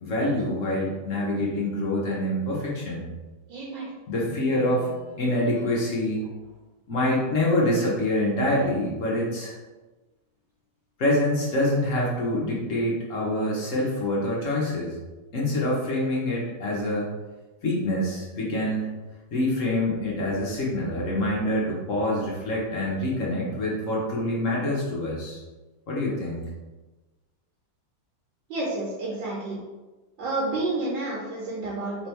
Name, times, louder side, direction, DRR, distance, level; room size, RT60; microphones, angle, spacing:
voice 1, 0.0-3.1 4.1-6.3 6.9-9.6 11.0-15.0 15.3-17.1 17.6-18.9 19.3-25.4 25.9-26.4, left 1 dB, 55° left, -4 dB, 0.9 m, -26 dB
voice 2, 3.5-3.9 28.5-29.6 30.2-32.1, right 2 dB, 70° right, -5 dB, 1.5 m, -30 dB
3.5 x 3.3 x 4.3 m, 1.2 s
omnidirectional pair, 2.2 m